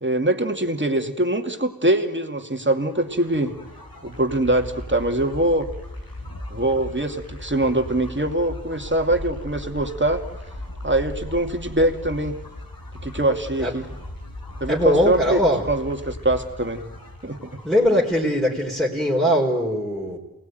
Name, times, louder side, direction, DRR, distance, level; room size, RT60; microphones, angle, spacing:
voice 1, 0.0-3.5 4.0-5.7 6.5-10.2 10.8-12.4 13.0-13.9 14.6-15.4 15.7-16.8 17.2-17.6, right 1 dB, 30° right, 5 dB, 2.5 m, -23 dB
sound 1, 2.7-18.3, left 1 dB, 80° left, 6.5 m, -38 dB
voice 2, 14.7-15.7 17.6-20.2, equal, ahead, -4 dB, 4.6 m, -21 dB
28.5 x 19.5 x 9.4 m, 1.0 s
wide cardioid pair, 55°, 35 cm